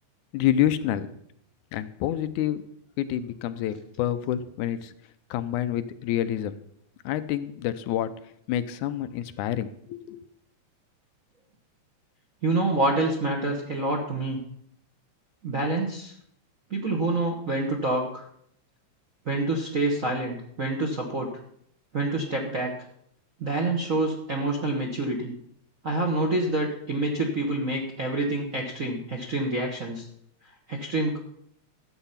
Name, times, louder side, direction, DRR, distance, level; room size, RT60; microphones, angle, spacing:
voice 1, 0.3-1.1 1.7-2.6 3.0-4.9 5.3-6.6 7.1-8.1 8.5-10.2, left 11 dB, 90° left, 11 dB, 2.2 m, -28 dB
voice 2, 12.4-14.4 15.4-16.1 16.7-18.2 19.2-21.3 21.9-22.7 23.4-25.3 25.8-30.1 30.7-31.2, right 2 dB, 55° right, 1 dB, 0.9 m, -27 dB
12.5 x 7.9 x 5.7 m, 0.69 s
omnidirectional pair, 3.4 m